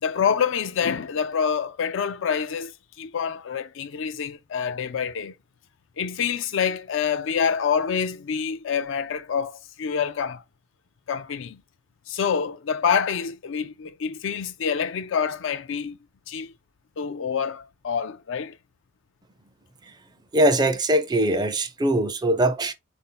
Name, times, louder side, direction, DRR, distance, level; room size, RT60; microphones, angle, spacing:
voice 1, 0.0-2.7 3.0-5.3 6.0-10.4 11.1-11.6 12.1-16.0 16.3-16.5 17.0-18.6, left 7 dB, 65° left, 0.4 m, -26 dB
voice 2, 20.3-22.7, right 1 dB, 20° right, 0.5 m, -21 dB
4.3 x 2.7 x 3.7 m
head